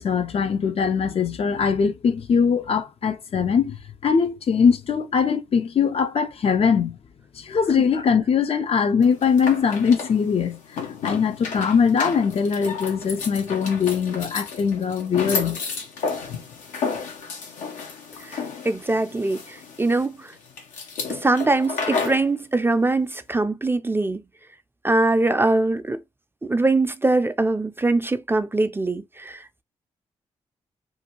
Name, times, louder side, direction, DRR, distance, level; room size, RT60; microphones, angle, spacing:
voice 1, 0.0-3.8 4.0-7.0 7.4-10.6 11.0-15.6, left 6 dB, 50° left, 0.5 m, -21 dB
sound 1, 9.0-22.3, left 5 dB, 85° left, 0.7 m, -32 dB
voice 2, 18.2-20.3 21.1-24.2 24.8-26.0 26.4-29.6, right 2 dB, 15° right, 0.4 m, -22 dB
2.6 x 2.2 x 2.9 m
supercardioid pair, 45°, 13 cm